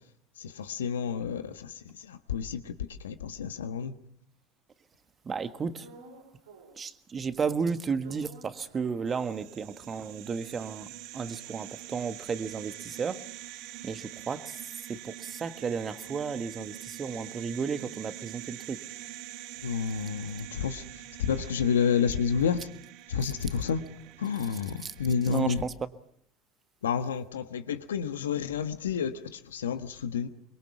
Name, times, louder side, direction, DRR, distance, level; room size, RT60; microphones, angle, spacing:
voice 1, 0.4-4.0 19.6-22.7 23.1-23.8 24.2-25.6 26.8-30.3, left 6 dB, 85° left, 1.3 m, -30 dB
voice 2, 5.2-5.9 6.8-10.9 11.1-13.2 13.8-18.8 23.2-23.3 24.5-24.9 25.2-25.7, right 5 dB, 30° right, 1.5 m, -33 dB
sound 1, 5.8-7.0 7.3-9.9 10.3-10.4 10.5-15.0 15.4-19.4, right 4 dB, 80° right, 3.9 m, -57 dB
sound 2, 9.1-25.6, right 14 dB, 65° right, 1.3 m, -45 dB
24.5 x 22.0 x 7.0 m
hypercardioid pair, 75°, 0 cm